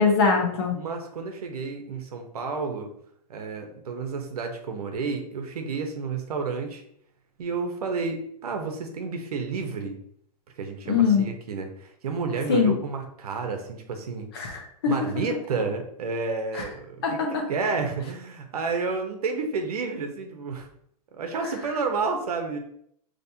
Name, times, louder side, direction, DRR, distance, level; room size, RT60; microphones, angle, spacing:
voice 1, 0.0-0.7 10.9-11.3 12.5-12.8 14.3-14.9 16.5-16.6 17.0-17.3, left 5 dB, 40° left, 2 dB, 1.0 m, -22 dB
voice 2, 0.7-2.9 3.3-6.8 7.4-10.0 10.6-14.3 14.9-20.7 21.1-22.6, right 4 dB, 70° right, 5 dB, 1.0 m, -30 dB
5.9 x 3.2 x 2.8 m, 0.68 s
hypercardioid pair, 175°, 20 cm